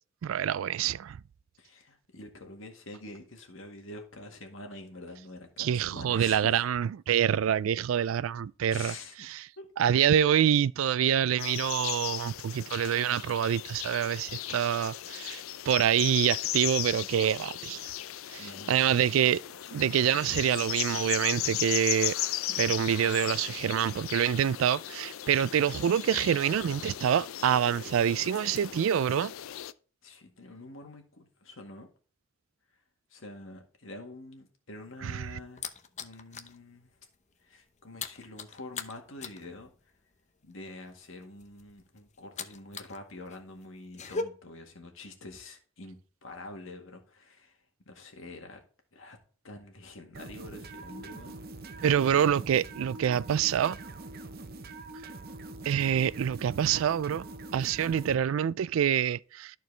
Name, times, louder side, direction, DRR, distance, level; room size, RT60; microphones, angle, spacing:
voice 1, 0.2-1.2 5.6-8.9 9.8-17.8 18.3-18.4 18.7-19.4 19.7-22.1 22.5-29.3 35.0-35.2 51.8-53.8 55.7-57.2 57.5-59.5, right 9 dB, 80° right, 0.3 m, -26 dB
voice 2, 1.6-6.7 8.7-9.3 9.6-9.7 18.4-18.9 30.0-31.9 32.7-32.8 33.1-35.7 36.0-37.0 37.4-39.7 40.4-48.6 48.9-49.2 49.4-51.4, left 2 dB, 75° left, 1.9 m, -46 dB
sound 1, 11.4-29.7, left 13 dB, 90° left, 0.4 m, -36 dB
sound 2, 34.8-36.6 36.9-37.2 37.4-43.0 43.3-44.2, left 4 dB, 35° left, 0.7 m, -40 dB
sound 3, 50.1-58.2, right 2 dB, 50° right, 0.8 m, -44 dB
13.0 x 4.6 x 3.3 m
head